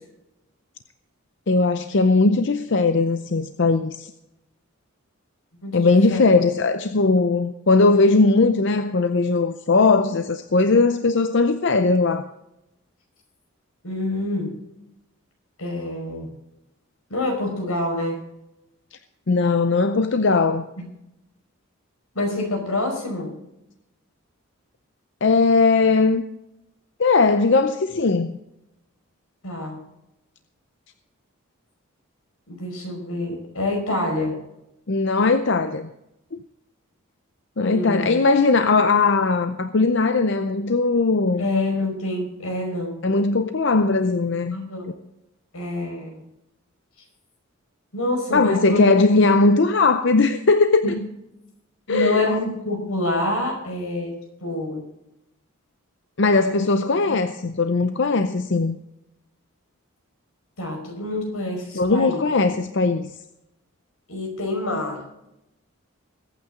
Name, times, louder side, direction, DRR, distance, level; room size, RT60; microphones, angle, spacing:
voice 1, 1.5-4.1 5.7-12.3 19.3-20.7 25.2-26.2 27.0-28.4 34.9-35.9 36.3-36.4 37.6-41.4 43.0-44.6 48.3-50.9 51.9-52.4 56.2-58.8 61.7-63.1, left 3 dB, 55° left, 10 dB, 0.6 m, -19 dB
voice 2, 5.6-6.2 13.8-14.5 15.6-16.3 17.1-18.2 20.8-20.9 22.1-23.3 29.4-29.8 32.5-34.4 37.7-38.2 41.4-43.0 44.5-44.8 45.5-46.2 47.9-48.9 50.8-50.9 51.9-54.1 54.4-54.8 56.3-56.4 57.1-57.2 60.6-62.2 64.1-65.3, left 1 dB, 90° left, 2 dB, 5.3 m, -26 dB
21.5 x 9.1 x 3.8 m, 0.87 s
head